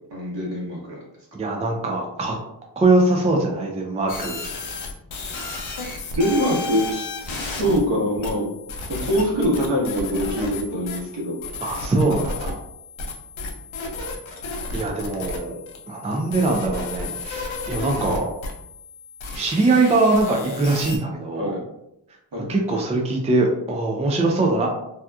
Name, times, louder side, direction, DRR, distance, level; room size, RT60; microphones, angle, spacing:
voice 1, 0.1-1.0 6.2-7.1 7.6-8.5 8.9-11.4 21.4-21.6 22.3-22.5, equal, 60° right, -3 dB, 1.1 m, -23 dB
voice 2, 1.4-2.4 2.8-4.4 11.6-12.6 14.7-15.6 15.9-18.2 19.3-21.6 22.5-24.7, right 2 dB, 15° right, 0 dB, 0.4 m, -22 dB
sound 1, 4.1-21.0, left 3 dB, 75° left, 0.7 m, -33 dB
2.8 x 2.3 x 2.2 m, 0.84 s
cardioid pair, 70°, 47 cm